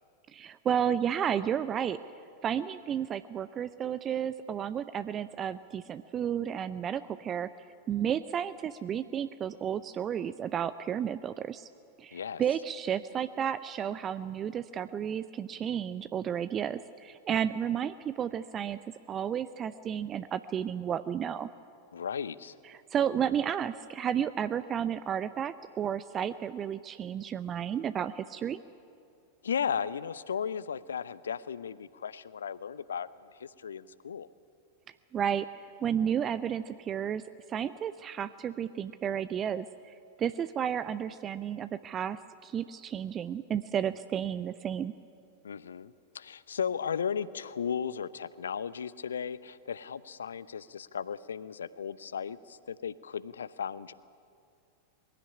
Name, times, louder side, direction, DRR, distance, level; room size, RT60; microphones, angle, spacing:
voice 1, 0.3-2.0 2.4-7.5 7.9-11.7 12.0-18.8 19.1-21.5 22.7-28.6 35.1-37.2 37.5-44.9, right 9 dB, 25° right, 14 dB, 0.5 m, -32 dB
voice 2, 12.1-12.4 21.9-22.5 29.4-34.3 45.4-53.9, left 7 dB, 70° left, 18 dB, 0.6 m, -35 dB
21.5 x 16.0 x 9.8 m, 2.4 s
figure-of-eight pair, 90°, 0 cm